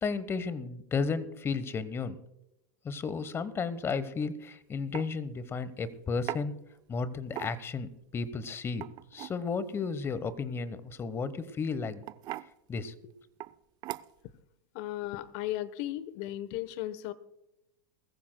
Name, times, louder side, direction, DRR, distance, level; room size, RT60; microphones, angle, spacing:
voice 1, 0.0-2.2 2.8-6.6 6.9-8.8 9.1-12.0 12.7-13.1, left 5 dB, 20° left, 16 dB, 1.1 m, -33 dB
sound 1, 4.3-4.4 4.9-5.1 6.3-6.5 7.3-7.8 8.7-9.4 11.0-11.3 12.0-12.5 13.4-13.5 13.8-14.3, right 15 dB, 40° right, 0.5 m, -39 dB
voice 2, 14.7-17.1, left 14 dB, 55° left, 16 dB, 1.0 m, -36 dB
20.5 x 14.5 x 2.2 m, 0.86 s
hypercardioid pair, 105°, 11 cm